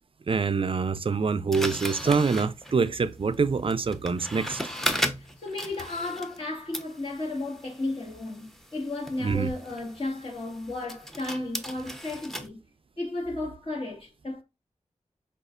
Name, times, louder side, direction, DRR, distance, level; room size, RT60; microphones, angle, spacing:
voice 1, 0.3-4.6 9.2-9.5, right 5 dB, 45° right, 0.4 m, -25 dB
sound 1, 1.5-6.5 6.7-12.5, equal, 5° left, 0.7 m, -36 dB
voice 2, 5.2-12.6 13.0-14.4, left 2 dB, 45° left, 1.5 m, -34 dB
5.0 x 2.4 x 2.4 m
cardioid pair, 45°, 13 cm